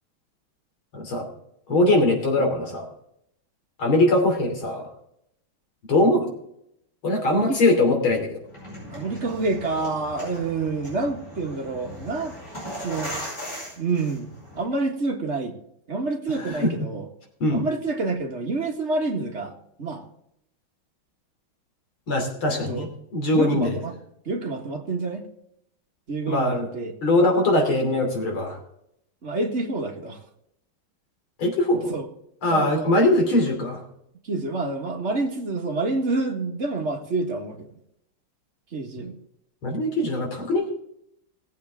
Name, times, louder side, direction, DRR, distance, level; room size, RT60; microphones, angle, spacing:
voice 1, 0.9-1.3 1.7-2.9 3.8-4.9 5.9-6.3 7.0-8.4 16.5-16.7 17.4-17.7 22.1-23.8 26.3-26.7 27.0-28.6 31.4-31.9 32.4-33.8 39.6-40.7, left 1 dB, 90° left, 2 dB, 3.9 m, -21 dB
sound 1, 8.4-14.6, equal, 35° left, 6.0 m, -38 dB
voice 2, 8.9-12.4 12.8-13.1 13.8-15.6 15.9-17.1 17.5-20.1 22.7-22.9 23.3-24.0 24.3-25.3 26.1-26.9 29.2-30.2 31.9-32.1 32.5-32.9 34.2-37.8 38.7-39.2, right 3 dB, 35° right, 2 dB, 1.8 m, -28 dB
18.5 x 8.2 x 3.6 m, 0.75 s
omnidirectional pair, 2.2 m